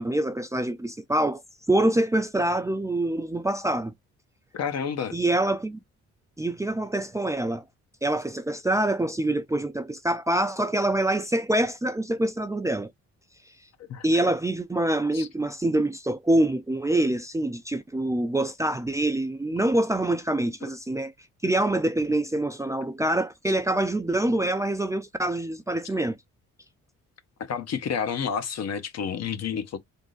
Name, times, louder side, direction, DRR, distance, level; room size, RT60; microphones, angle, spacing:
voice 1, 0.0-1.4 1.7-3.9 5.1-5.8 6.4-7.6 8.0-12.9 14.0-21.1 21.4-26.2, right 1 dB, 10° right, 0.4 m, -25 dB
voice 2, 4.5-5.2 13.9-14.0 15.1-15.3 27.5-29.8, left 7 dB, 60° left, 0.9 m, -30 dB
3.7 x 2.6 x 3.8 m
cardioid pair, 90°, 30 cm